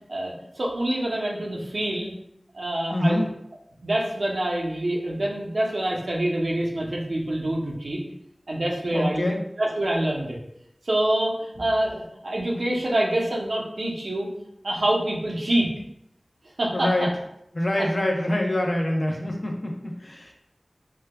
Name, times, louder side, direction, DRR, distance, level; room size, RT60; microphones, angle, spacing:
voice 1, 0.1-2.1 2.5-3.2 3.8-8.0 8.5-9.2 9.6-10.4 10.8-14.3 14.6-15.7 16.6-17.1, right 1 dB, 75° right, -2 dB, 0.7 m, -26 dB
voice 2, 2.9-3.2 8.9-9.4 11.6-11.7 16.7-17.1 17.5-20.3, left 1 dB, 50° left, 0 dB, 0.6 m, -25 dB
4.4 x 2.2 x 2.2 m, 0.78 s
wide cardioid pair, 55°, 0 cm